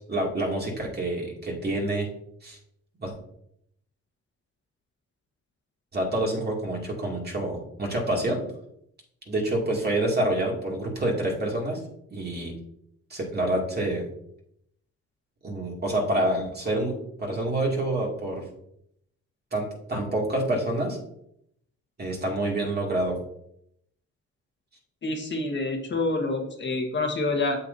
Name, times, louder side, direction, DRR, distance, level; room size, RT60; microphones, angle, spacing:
voice 1, 0.0-2.1 2.4-2.6 3.0-3.1 5.9-8.4 9.3-11.8 12.1-12.5 13.1-14.0 15.4-18.4 19.5-21.0 22.0-23.2, right 1 dB, 35° right, -1 dB, 2.6 m, -27 dB
voice 2, 25.0-27.6, left 2 dB, 40° left, 2 dB, 1.5 m, -27 dB
8.3 x 7.2 x 2.8 m, 0.73 s
cardioid pair, 90°, 30 cm